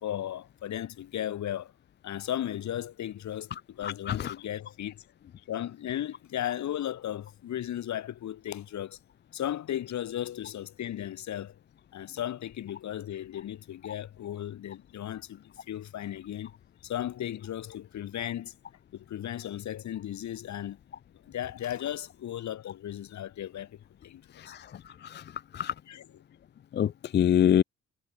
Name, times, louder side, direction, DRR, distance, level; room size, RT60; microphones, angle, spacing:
voice 1, 0.0-1.7 2.0-5.0 5.5-9.0 9.3-11.5 11.9-16.5 16.8-18.5 18.9-20.8 21.3-24.5 25.9-26.1, left 11 dB, 70° left, 2.5 m, -36 dB
voice 2, 3.8-4.3 24.5-24.6 25.0-25.2 25.5-25.7 26.7-27.6, left 9 dB, 35° left, 0.4 m, -25 dB
cardioid pair, 90°, 30 cm